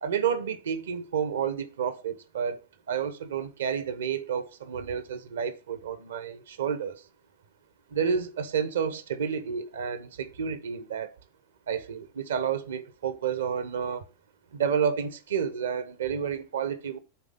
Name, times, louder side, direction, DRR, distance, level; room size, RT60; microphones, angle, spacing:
voice 1, 0.0-2.6 2.9-7.0 7.9-11.2 11.7-14.0 14.5-17.0, right 7 dB, 65° right, 1.0 m, -30 dB
8.0 x 3.6 x 5.1 m
figure-of-eight pair, 90°, 0 cm